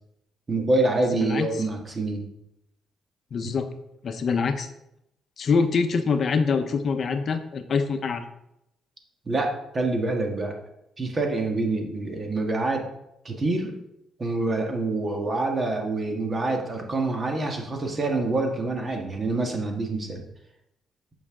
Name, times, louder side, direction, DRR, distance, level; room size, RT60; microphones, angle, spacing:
voice 1, 0.5-2.3 9.2-10.5 11.0-12.8 13.2-13.8 14.2-20.2, right 2 dB, 35° right, 2 dB, 1.6 m, -26 dB
voice 2, 1.1-1.5 3.3-3.7 4.0-4.7 5.4-8.3, left 5 dB, 50° left, 8 dB, 0.7 m, -24 dB
8.4 x 5.6 x 3.7 m, 0.81 s
cardioid pair, 90°, 0 cm